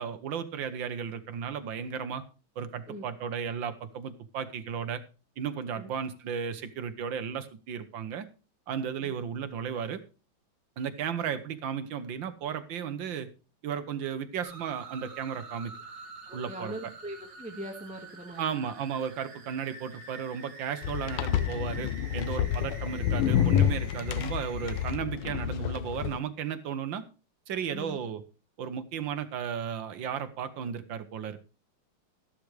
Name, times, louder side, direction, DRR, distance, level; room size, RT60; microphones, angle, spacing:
voice 1, 0.0-2.2 2.6-5.0 5.4-8.2 8.7-10.0 10.8-13.3 13.6-15.7 16.3-16.7 18.4-27.0 27.5-28.2 28.6-31.4, right 7 dB, 65° right, 11 dB, 1.6 m, -34 dB
sound 1, 14.4-25.0, right 4 dB, 50° right, 2.2 m, -47 dB
voice 2, 16.3-18.4 27.7-28.0, right 1 dB, 5° right, 2 dB, 1.2 m, -41 dB
sound 2, 20.8-26.2, left 10 dB, 85° left, 1.6 m, -28 dB
13.0 x 12.0 x 3.2 m, 0.33 s
omnidirectional pair, 2.3 m